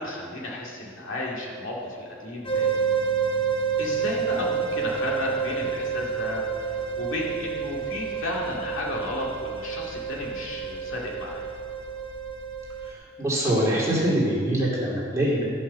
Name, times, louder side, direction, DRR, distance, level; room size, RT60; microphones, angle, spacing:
voice 1, 0.0-2.7 3.8-6.4 7.0-11.4, left 1 dB, 65° left, -3 dB, 2.2 m, -33 dB
sound 1, 2.4-12.9, right 6 dB, 25° left, 1.1 m, -29 dB
voice 2, 13.2-15.4, right 1 dB, 15° right, -6 dB, 2.7 m, -23 dB
13.0 x 5.5 x 6.8 m, 2.1 s
head